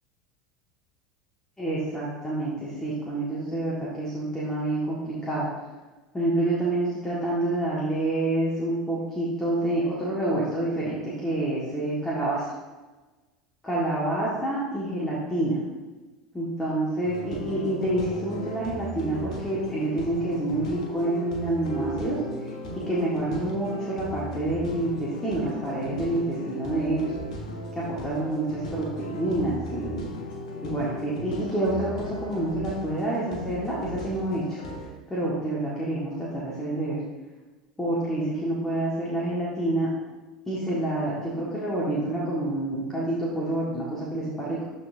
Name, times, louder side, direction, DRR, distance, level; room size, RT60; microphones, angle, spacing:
voice 1, 1.6-5.5 6.1-12.5 13.6-15.6 16.3-22.2 22.9-27.1 27.8-30.1 30.6-34.6 35.1-37.0 37.8-39.9 40.5-44.6, right 1 dB, 10° left, -7 dB, 1.8 m, -28 dB
sound 1, 17.0-34.9, equal, 65° left, 1.3 m, -37 dB
12.5 x 4.3 x 2.7 m, 1.2 s
figure-of-eight pair, 75°, 4 cm